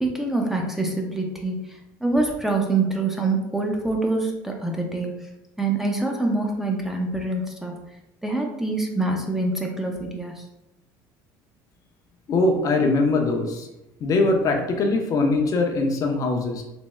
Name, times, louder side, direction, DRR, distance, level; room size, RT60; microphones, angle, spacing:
voice 1, 0.0-1.6 2.0-5.1 5.6-7.7 8.2-10.3, right 2 dB, 5° right, 0 dB, 0.5 m, -25 dB
voice 2, 12.3-13.7 14.0-16.6, left 2 dB, 45° left, 3 dB, 0.6 m, -22 dB
3.4 x 2.0 x 3.0 m, 0.91 s
supercardioid pair, 100°, 8 cm